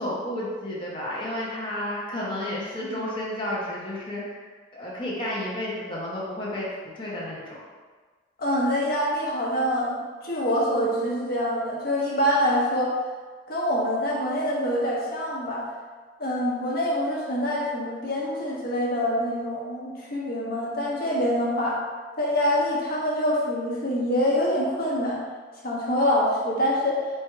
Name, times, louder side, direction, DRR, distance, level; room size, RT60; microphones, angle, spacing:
voice 1, 0.0-4.3 4.7-6.7 7.0-7.6, left 1 dB, 25° left, -6 dB, 0.9 m, -31 dB
voice 2, 8.4-13.0 13.5-15.6 16.2-21.8 22.2-25.2 25.6-27.0, equal, 50° left, -4 dB, 1.1 m, -25 dB
4.4 x 2.5 x 4.5 m, 1.4 s
head